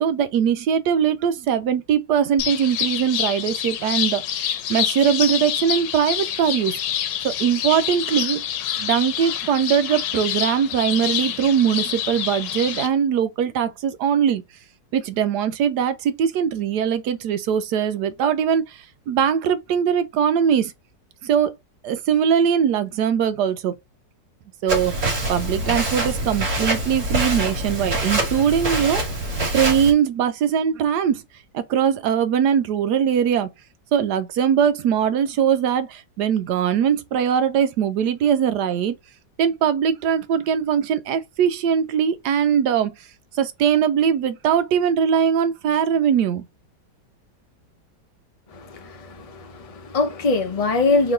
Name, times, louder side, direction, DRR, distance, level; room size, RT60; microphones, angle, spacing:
voice 1, 0.0-4.4 4.7-6.8 7.2-8.4 8.8-14.4 14.9-20.7 21.2-21.5 21.8-23.7 24.6-29.2 29.5-31.2 31.5-33.5 33.9-39.0 39.4-43.1 43.3-46.4, right 8 dB, 75° right, 1.1 m, -21 dB
sound 1, 2.4-12.9, left 10 dB, 80° left, 1.3 m, -27 dB
Walk footsteps, 24.7-29.9, right 1 dB, 45° right, 2.4 m, -25 dB
voice 2, 48.5-51.1, left 3 dB, 50° left, 0.4 m, -23 dB
4.0 x 3.1 x 3.8 m
omnidirectional pair, 1.9 m